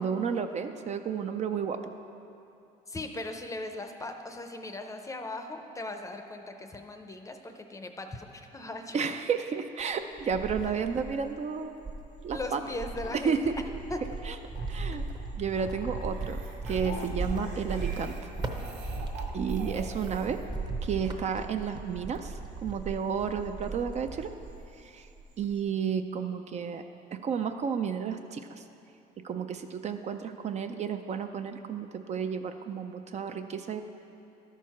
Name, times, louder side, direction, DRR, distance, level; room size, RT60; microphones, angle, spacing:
voice 1, 0.0-1.8 8.9-11.9 12.2-12.6 13.1-13.5 14.3-14.4 14.7-15.0 15.4-16.4 16.6-18.3 19.3-20.4 20.8-22.3 22.6-24.3 24.8-25.1 25.4-26.8 27.2-28.6 29.2-33.8, right 6 dB, 40° right, 7 dB, 0.4 m, -32 dB
voice 2, 2.9-9.1 12.3-13.4 13.9-14.0 14.9-15.1, left 2 dB, 20° left, 6 dB, 0.6 m, -39 dB
Cricket, 9.8-11.3 11.8-24.8 25.1-25.6, right 3 dB, 25° right, 0.8 m, -37 dB
sound 1, 12.5-16.1 16.7-21.3, left 6 dB, 70° left, 0.7 m, -46 dB
sound 2, 15.0-15.1 16.0-20.5, right 3 dB, 80° right, 1.4 m, -47 dB
12.0 x 4.6 x 5.8 m, 2.8 s
cardioid pair, 110°, 17 cm